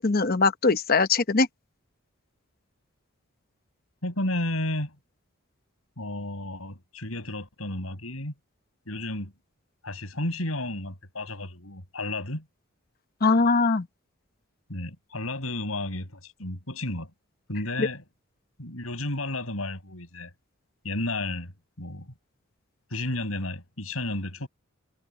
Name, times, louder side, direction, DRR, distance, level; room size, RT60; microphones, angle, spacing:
voice 1, 0.0-1.5 13.2-13.9 17.8-17.9, left 3 dB, 45° left, 0.9 m, -21 dB
voice 2, 4.0-5.0 6.0-8.3 8.9-9.3 9.8-12.5 14.7-17.1 17.5-18.0 18.6-20.3 20.8-21.5 21.8-22.1 22.9-24.5, left 1 dB, 80° left, 7.1 m, -32 dB
head